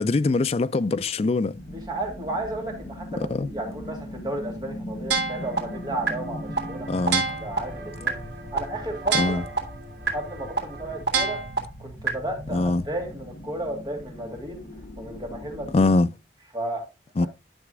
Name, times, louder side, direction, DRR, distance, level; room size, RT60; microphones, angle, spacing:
voice 1, 0.0-1.6 3.3-3.5 6.9-7.3 9.1-9.4 12.5-12.9 15.7-16.1 17.2-17.3, left 3 dB, 35° left, 0.3 m, -22 dB
sound 1, 1.5-15.9, equal, 70° left, 1.0 m, -40 dB
voice 2, 1.7-8.1 8.5-9.4 10.1-11.4 11.8-14.6 15.0-15.9 16.5-16.8, right 1 dB, 25° right, 2.7 m, -33 dB
sound 2, 5.1-5.6 6.1-6.2 6.6-6.7 7.1-7.6 8.1-8.2 8.6-8.7 9.1-9.6 10.1-10.2 10.6-10.7 11.1-11.6 12.1-12.2, right 4 dB, 85° right, 2.6 m, -23 dB
sound 3, 5.4-11.1, right 1 dB, 60° right, 1.6 m, -42 dB
11.0 x 5.9 x 2.3 m
head